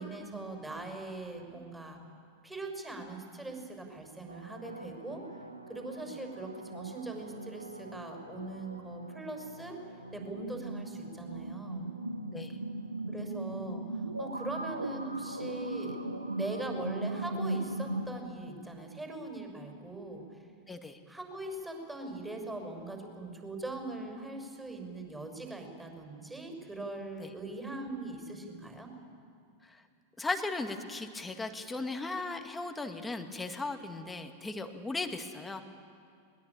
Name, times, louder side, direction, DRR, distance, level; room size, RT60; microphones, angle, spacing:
voice 1, 0.0-2.0 2.4-5.2 5.7-9.8 10.1-11.9 13.1-16.0 16.3-20.2 21.1-28.9, right 2 dB, 10° right, 2 dB, 6.5 m, -41 dB
sound 1, 4.3-18.1, right 2 dB, 85° right, 1.2 m, -39 dB
voice 2, 20.7-21.0 27.2-27.3 29.6-29.8 30.2-35.6, left 3 dB, 10° left, 6 dB, 1.9 m, -37 dB
22.5 x 20.5 x 9.1 m, 2.3 s
figure-of-eight pair, 90°, 0 cm